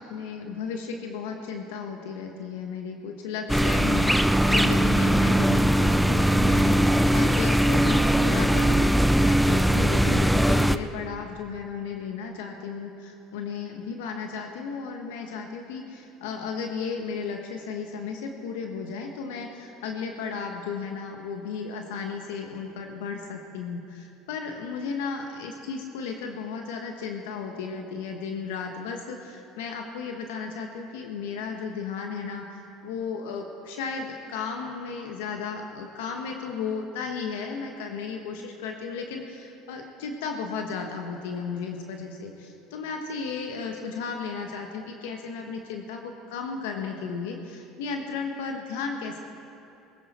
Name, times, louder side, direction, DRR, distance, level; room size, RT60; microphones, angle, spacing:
voice 1, 0.0-49.2, left 5 dB, 85° left, 3 dB, 1.3 m, -34 dB
sound 1, 3.5-10.8, right 1 dB, ahead, 0.5 m, -20 dB
19.5 x 16.0 x 4.3 m, 2.7 s
supercardioid pair, 90°, 0 cm